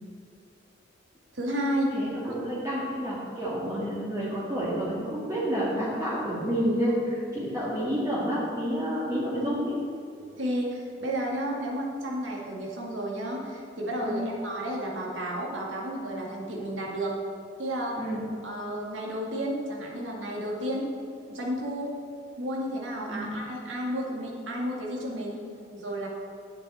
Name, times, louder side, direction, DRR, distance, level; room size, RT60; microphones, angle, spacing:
voice 1, 1.3-1.9 2.2-2.3 3.7-3.9 10.2-17.1 17.6-18.0 18.4-20.9 21.3-22.0 22.4-25.4 25.7-26.1, equal, 75° right, -2 dB, 2.2 m, -32 dB
voice 2, 1.9-9.7 14.0-14.2 18.0-18.3 23.1-23.3, equal, 15° right, -9 dB, 1.8 m, -29 dB
10.0 x 8.8 x 4.3 m, 2.4 s
head